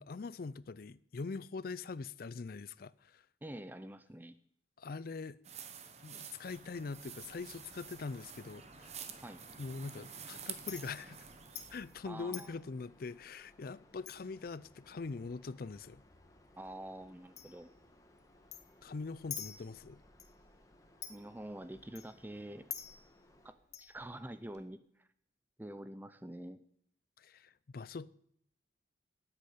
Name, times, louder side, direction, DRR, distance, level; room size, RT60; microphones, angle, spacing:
voice 1, 0.0-3.2 4.8-5.4 6.0-9.0 9.6-11.3 11.7-16.0 18.8-20.0 27.2-28.1, left 4 dB, 50° left, 0.4 m, -43 dB
voice 2, 3.4-4.4 9.2-9.4 12.1-12.6 16.6-17.7 21.1-22.7 23.4-25.1 25.6-26.6, right 1 dB, 10° right, 0.5 m, -47 dB
sound 1, 5.4-12.0, right 7 dB, 35° right, 1.1 m, -49 dB
Chink clink, 6.4-24.6, left 9 dB, 35° left, 1.1 m, -53 dB
sound 2, 7.8-23.5, left 1 dB, 20° left, 1.4 m, -65 dB
10.0 x 8.3 x 8.4 m
head